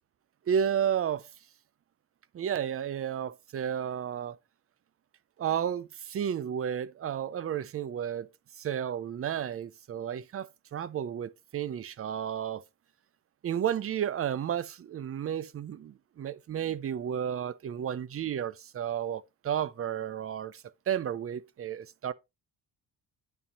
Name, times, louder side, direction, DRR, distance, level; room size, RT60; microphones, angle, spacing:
voice 1, 0.5-1.3 2.3-4.4 5.4-8.3 8.6-12.6 13.4-22.1, right 9 dB, 35° right, 0.4 m, -32 dB
9.1 x 5.7 x 4.0 m
cardioid pair, 155°, 45 cm